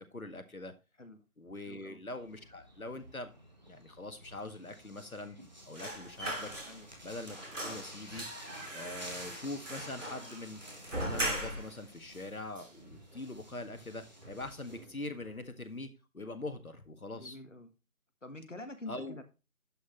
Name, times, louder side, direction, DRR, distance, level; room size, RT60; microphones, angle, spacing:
voice 1, 0.1-0.7 1.4-3.3 3.7-5.4 5.7-6.5 7.0-8.3 8.7-10.6 11.0-17.4 18.9-19.2, left 2 dB, 75° left, 8 dB, 1.8 m, -43 dB
voice 2, 1.6-2.0 6.6-6.9 17.1-17.7 18.2-19.2, left 2 dB, 55° left, 8 dB, 1.7 m, -46 dB
sound 1, 2.1-14.8, equal, 30° right, 1.7 m, -52 dB
sound 2, 5.7-7.0 7.3-11.8 12.2-12.3 12.6-13.4 13.7-13.9 14.2-14.9 15.2-15.4, right 1 dB, 60° right, 2.8 m, -40 dB
11.0 x 6.0 x 3.2 m, 0.29 s
figure-of-eight pair, 175°, 44 cm